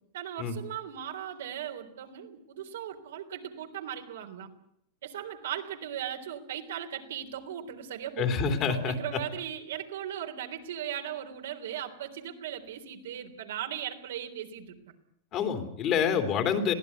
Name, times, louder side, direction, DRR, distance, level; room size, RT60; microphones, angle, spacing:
voice 1, 0.1-4.5 5.0-8.3 8.7-14.8, right 10 dB, 85° right, 4 dB, 3.5 m, -38 dB
voice 2, 8.2-9.2 15.3-16.7, left 6 dB, 40° left, 8 dB, 3.2 m, -27 dB
22.5 x 15.5 x 9.5 m, 0.72 s
supercardioid pair, 140°, 0 cm